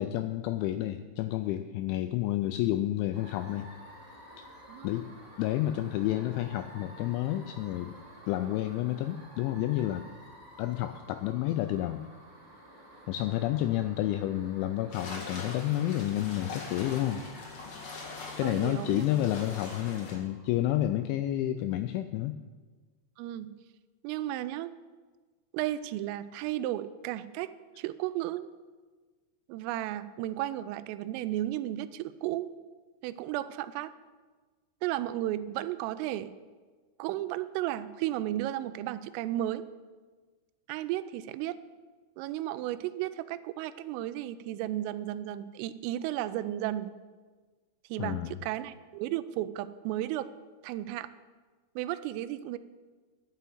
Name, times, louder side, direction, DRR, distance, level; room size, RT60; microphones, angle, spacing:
voice 1, 0.0-3.7 4.4-4.5 4.8-5.1 5.4-7.9 8.3-10.1 10.6-12.1 13.1-17.2 18.4-22.4 48.0-48.3, left 13 dB, 85° left, 9 dB, 2.7 m, -30 dB
sound 1, 3.1-21.1, equal, 15° right, 4.2 m, -52 dB
sound 2, 14.9-20.2, left 3 dB, 45° left, 2.8 m, -42 dB
voice 2, 18.4-19.1 23.2-23.5 24.0-24.7 25.5-28.5 29.5-32.5 33.0-33.9 34.8-36.3 37.0-39.6 40.7-41.6 42.2-46.9 47.9-50.3 50.6-51.1 51.8-52.6, right 13 dB, 85° right, 14 dB, 3.1 m, -34 dB
11.5 x 7.0 x 7.8 m, 1.4 s
omnidirectional pair, 5.8 m